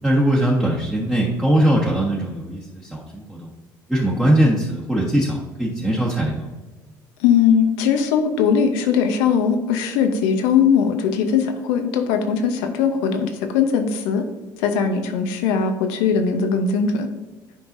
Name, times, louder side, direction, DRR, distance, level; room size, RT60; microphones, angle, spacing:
voice 1, 0.0-3.5 3.9-6.5, right 1 dB, 5° right, -7 dB, 1.4 m, -20 dB
voice 2, 7.2-14.2 14.6-17.1, left 6 dB, 80° left, 6 dB, 0.9 m, -20 dB
11.0 x 4.7 x 2.7 m, 1.2 s
hypercardioid pair, 70°, 10 cm